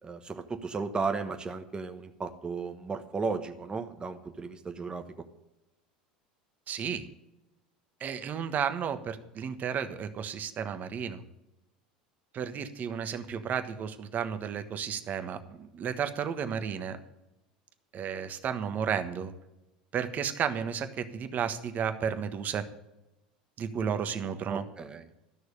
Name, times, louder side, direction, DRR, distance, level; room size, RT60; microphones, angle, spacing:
voice 1, 0.0-5.3 24.5-25.1, right 4 dB, 20° right, 7 dB, 1.2 m, -35 dB
voice 2, 6.7-7.0 8.0-11.2 12.3-17.0 17.9-19.3 19.9-22.6 23.6-24.6, right 7 dB, 40° right, 9 dB, 1.3 m, -33 dB
13.0 x 6.4 x 8.5 m, 0.92 s
hypercardioid pair, 80°, 4 cm